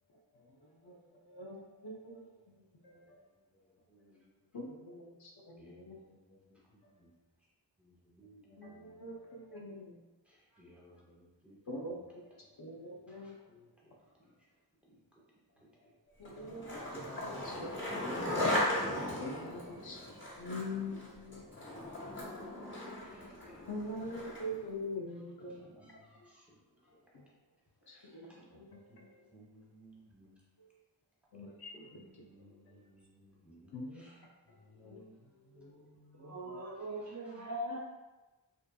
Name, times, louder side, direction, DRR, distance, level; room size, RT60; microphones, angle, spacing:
voice 1, 1.3-2.2 2.8-3.2 4.5-6.0 8.5-10.0 11.7-13.4 16.2-18.1 19.2-20.0 20.4-21.4 23.7-25.7 27.1-27.2 27.9-29.1 31.3-32.0 33.7-34.1 34.8-35.0, left 1 dB, 60° left, -1 dB, 0.6 m, -44 dB
voice 2, 3.5-4.3 5.6-7.1 7.8-9.1 10.3-12.0 13.1-13.7 19.8-21.6 21.9-22.6 23.0-24.1 25.0-26.4 26.9-27.0 27.9-28.6 28.9-29.0 29.3-30.4 31.7-34.2 34.6-36.6, equal, 5° right, -5 dB, 0.7 m, -61 dB
Skateboard, 16.2-24.6, left 1 dB, 25° left, 0.9 m, -37 dB
voice 3, 36.1-37.8, right 1 dB, 40° right, -2 dB, 0.4 m, -41 dB
2.6 x 2.4 x 2.2 m, 1.1 s
wide cardioid pair, 50°, 44 cm